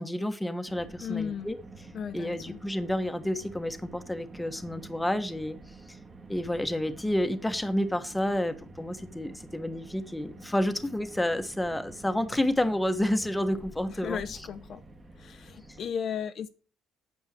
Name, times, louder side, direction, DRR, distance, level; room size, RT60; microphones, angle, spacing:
voice 1, 0.0-1.6 2.1-5.6 5.9-6.0 6.3-14.2, left 1 dB, 5° left, 8 dB, 1.2 m, -30 dB
Car, 0.7-15.9, right 3 dB, 25° right, 1.8 m, -49 dB
voice 2, 1.0-1.5 1.9-2.6 13.9-14.8 15.2-16.5, left 8 dB, 45° left, 10 dB, 0.7 m, -35 dB
9.0 x 7.3 x 8.1 m, 0.38 s
cardioid pair, 135°, 0 cm